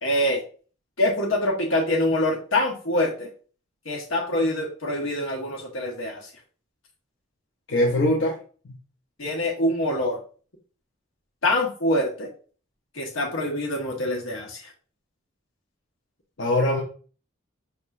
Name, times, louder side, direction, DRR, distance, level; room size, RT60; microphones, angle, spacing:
voice 1, 0.0-0.4 1.0-3.3 3.8-6.3 9.2-10.2 11.4-12.3 12.9-14.7, left 1 dB, 85° left, 0 dB, 1.3 m, -25 dB
voice 2, 7.7-8.4 8.6-8.8 16.4-16.8, left 1 dB, 70° left, -2 dB, 0.8 m, -22 dB
5.5 x 3.5 x 2.4 m, 0.40 s
head